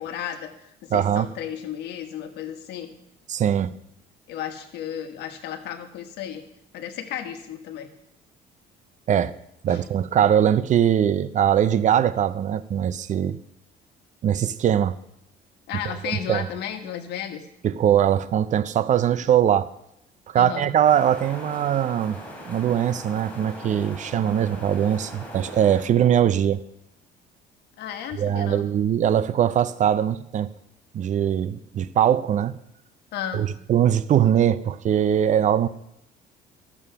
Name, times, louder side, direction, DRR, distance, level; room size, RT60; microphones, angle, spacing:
voice 1, 0.0-2.9 4.3-6.4 6.7-7.9 9.7-9.9 15.7-17.4 20.3-20.8 27.8-28.7 33.1-33.5, left 9 dB, 80° left, 1.4 m, -34 dB
voice 2, 0.9-1.3 3.3-3.7 9.1-9.3 9.6-13.4 14.2-15.0 16.0-16.5 17.6-19.7 20.3-22.2 22.5-26.6 28.2-30.5 30.9-32.5 33.3-35.7, right 9 dB, 45° right, 0.5 m, -21 dB
sound 1, 20.8-25.8, equal, 10° left, 3.3 m, -40 dB
13.0 x 7.1 x 5.7 m
cardioid pair, 110°, 17 cm